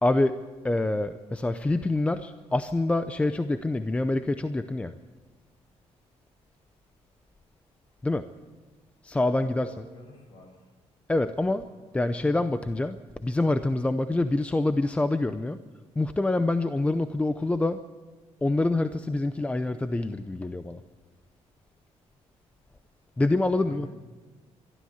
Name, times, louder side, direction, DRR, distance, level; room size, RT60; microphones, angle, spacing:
voice 1, 0.0-4.9 8.0-8.3 9.0-9.8 11.1-11.7 11.9-15.6 16.0-17.8 18.4-20.8 23.2-23.9, left 2 dB, 10° left, 10 dB, 0.6 m, -26 dB
voice 2, 9.2-10.7 11.5-12.3 23.3-23.9, left 2 dB, 40° left, 4 dB, 5.6 m, -50 dB
23.0 x 13.0 x 9.4 m, 1.3 s
cardioid pair, 165°, 12 cm